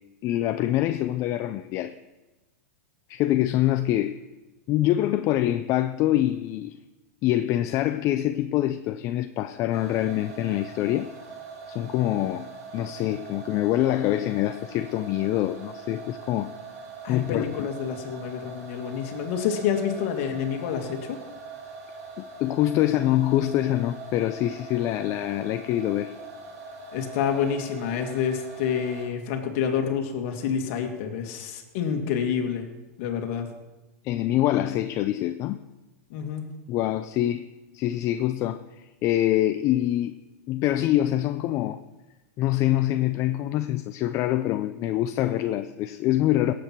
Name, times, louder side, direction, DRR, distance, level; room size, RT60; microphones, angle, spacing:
voice 1, 0.2-2.0 3.1-4.2 4.7-6.8 7.2-11.1 11.7-12.5 12.7-16.5 17.1-17.5 22.2-26.2 34.0-35.6 36.7-37.5 37.7-40.2 40.5-41.8 42.4-46.5, left 13 dB, 40° left, 0.5 m, -25 dB
sound 1, 9.7-29.1, right 4 dB, 80° right, 5.2 m, -42 dB
voice 2, 17.0-21.2 26.9-32.7 33.0-33.5 36.1-36.5, left 7 dB, 55° left, 2.1 m, -28 dB
17.5 x 7.9 x 4.6 m
hypercardioid pair, 125°, 8 cm